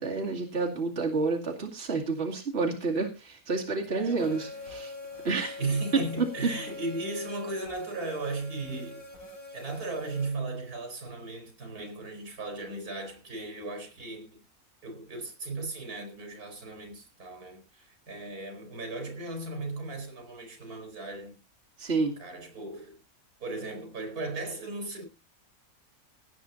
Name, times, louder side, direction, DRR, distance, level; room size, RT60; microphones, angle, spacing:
voice 1, 0.0-4.9 5.2-5.6 6.2-6.3 21.8-22.1, right 3 dB, 45° right, 2.6 m, -29 dB
voice 2, 3.9-4.6 5.6-9.1 9.5-14.3 14.8-21.4 22.2-23.0 23.4-25.0, right 2 dB, 85° right, 4.8 m, -36 dB
sound 1, 4.2-10.3, left 3 dB, 65° left, 4.7 m, -43 dB
17.5 x 9.1 x 4.0 m
omnidirectional pair, 1.6 m